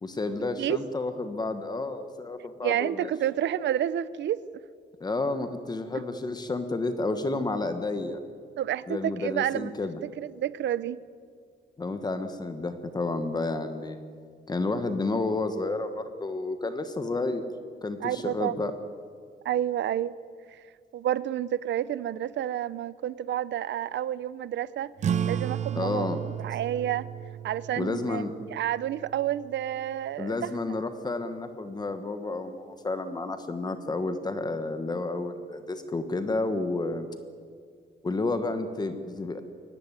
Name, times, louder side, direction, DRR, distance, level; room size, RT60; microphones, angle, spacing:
voice 1, 0.0-3.1 5.0-8.2 8.9-10.0 11.8-14.0 14.5-17.5 17.8-18.7 25.8-26.2 27.8-28.3 30.2-37.1 38.0-39.4, left 2 dB, 20° left, 9 dB, 1.3 m, -31 dB
voice 2, 2.6-4.4 8.6-9.7 10.2-11.0 18.0-18.6 19.4-20.1 20.5-20.6 20.9-24.9 25.3-26.1 26.4-27.1 27.4-28.2 28.5-30.3, right 11 dB, 75° right, 17 dB, 0.8 m, -29 dB
sound 1, 25.0-30.1, right 8 dB, 40° right, 0.5 m, -34 dB
23.0 x 18.5 x 9.8 m, 2.1 s
wide cardioid pair, 170°, 18 cm